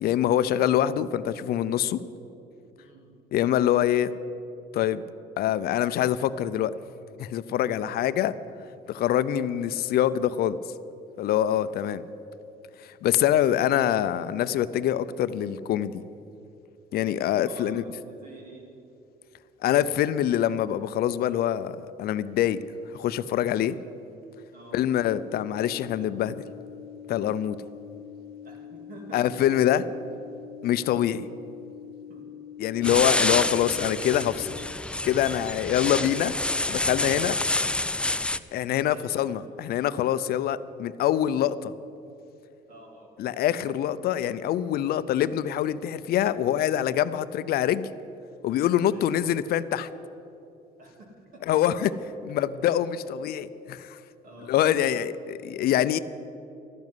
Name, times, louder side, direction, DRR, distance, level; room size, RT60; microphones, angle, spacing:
voice 1, 0.0-2.0 3.3-4.1 4.7-5.0 5.4-6.7 7.2-8.3 8.9-10.6 11.2-12.0 13.0-16.0 16.9-17.8 19.6-22.6 22.9-23.8 24.7-26.3 27.1-27.6 29.1-29.8 30.6-31.3 32.6-34.5 35.0-36.3 36.7-37.4 38.5-41.7 43.2-47.9 48.4-49.9 51.5-51.9 52.3-54.0 54.5-56.0, left 11 dB, 65° left, 15 dB, 0.5 m, -25 dB
voice 2, 2.8-3.2 8.2-8.6 17.5-18.8 24.5-24.9 28.4-29.4 32.1-32.3 38.9-39.4 42.7-43.2 48.9-49.2 50.8-51.6 54.2-54.7, right 2 dB, 55° right, -1 dB, 2.8 m, -48 dB
sound 1, 24.7-34.7, left 9 dB, 85° right, 0.9 m, -44 dB
sound 2, 32.8-38.4, left 2 dB, 5° left, 0.3 m, -28 dB
12.5 x 7.3 x 9.4 m, 2.7 s
cardioid pair, 110°, 17 cm